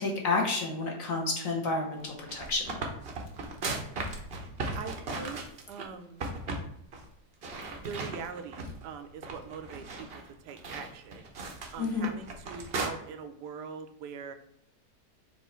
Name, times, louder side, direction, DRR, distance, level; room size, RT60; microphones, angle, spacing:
voice 1, 0.0-2.8 11.8-12.1, left 3 dB, 55° left, 0 dB, 1.3 m, -30 dB
sound 1, 2.1-5.9 6.2-6.7 6.9-7.1 7.4-8.8 9.2-12.9, right 3 dB, 50° right, 0.7 m, -37 dB
voice 2, 4.7-5.4 5.7-6.2 7.8-10.1 10.4-11.3 11.7-14.3, right 6 dB, 80° right, 7 dB, 1.2 m, -42 dB
4.5 x 2.6 x 4.2 m, 0.79 s
omnidirectional pair, 1.8 m